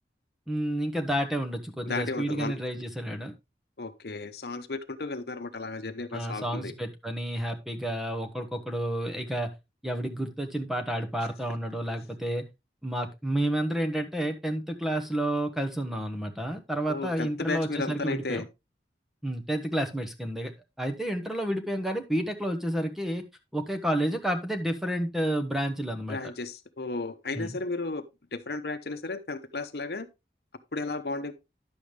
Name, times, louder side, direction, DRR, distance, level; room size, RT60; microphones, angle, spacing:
voice 1, 0.5-3.3 6.1-9.5 9.8-12.5 12.8-18.4 19.2-20.5 20.8-23.2 23.5-26.2 27.3-27.6, right 1 dB, ahead, 1.0 m, -30 dB
voice 2, 1.9-2.5 3.8-6.7 16.9-18.5 26.1-28.0 28.3-30.1 30.7-31.3, left 3 dB, 65° left, 0.9 m, -34 dB
10.5 x 7.0 x 3.3 m
head